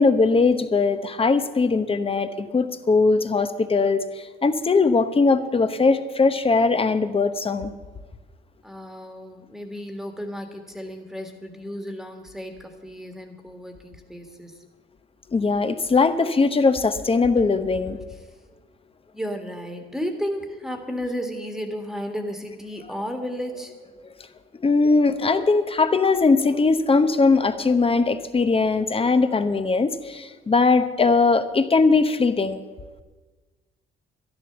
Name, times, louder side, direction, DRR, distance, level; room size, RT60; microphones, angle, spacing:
voice 1, 0.0-7.7 15.3-18.0 24.6-32.6, left 4 dB, 30° left, 10 dB, 0.9 m, -20 dB
voice 2, 8.6-14.6 18.1-18.2 19.1-23.7, equal, ahead, 4 dB, 1.7 m, -33 dB
12.0 x 11.0 x 6.8 m, 1.3 s
cardioid pair, 90°, 20 cm